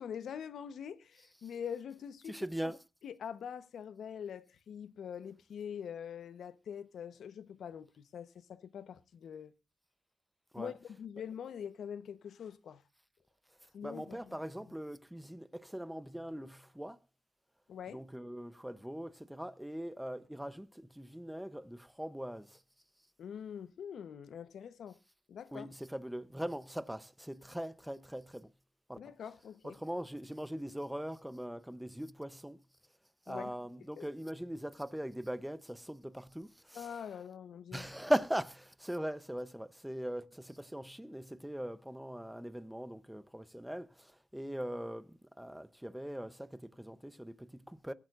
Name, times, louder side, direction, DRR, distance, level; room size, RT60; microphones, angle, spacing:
voice 1, 0.0-2.4 2.6-2.7 3.0-9.5 10.6-12.8 13.7-14.4 17.7-18.0 23.2-25.0 25.3-25.7 29.0-29.8 33.3-34.0 36.7-37.9, left 8 dB, 65° left, 0.9 m, -44 dB
voice 2, 2.3-2.8 10.5-10.7 13.8-17.0 17.9-22.6 25.5-28.5 28.9-29.0 29.6-32.6 33.3-36.9 37.7-47.9, equal, 5° right, 0.7 m, -40 dB
22.0 x 8.9 x 2.5 m
cardioid pair, 130°, 0 cm